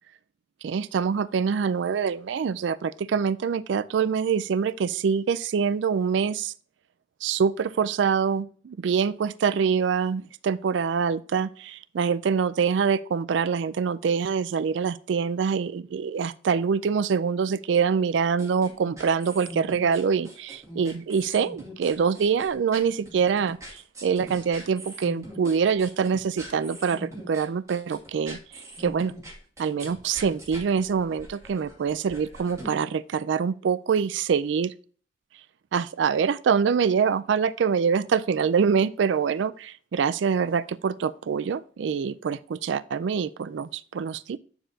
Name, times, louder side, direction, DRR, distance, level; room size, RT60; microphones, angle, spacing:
voice 1, 0.6-6.5 7.2-28.4 28.8-29.1 29.6-34.7 35.7-44.4, right 6 dB, 80° right, 0.4 m, -25 dB
sound 1, 18.4-32.8, right 1 dB, 15° right, 2.2 m, -43 dB
8.8 x 7.0 x 2.7 m
head